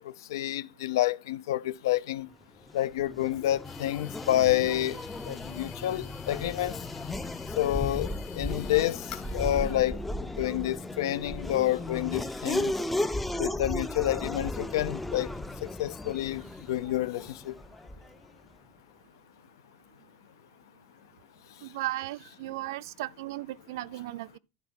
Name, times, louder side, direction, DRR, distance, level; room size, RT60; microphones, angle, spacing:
voice 1, 0.3-2.3 2.7-5.0 5.3-6.8 7.6-8.1 8.3-9.0 9.3-10.0 10.4-12.7 13.4-15.3 15.6-16.4 16.7-17.5, left 13 dB, 90° left, 0.6 m, -28 dB
Race car auto racing / Accelerating revving vroom, 2.6-18.2, left 1 dB, 5° left, 0.4 m, -35 dB
sound 1, 3.6-9.7, left 15 dB, 45° left, 1.0 m, -47 dB
voice 2, 21.6-24.4, right 17 dB, 65° right, 0.4 m, -36 dB
11.5 x 4.3 x 5.9 m
supercardioid pair, 170°, 2 cm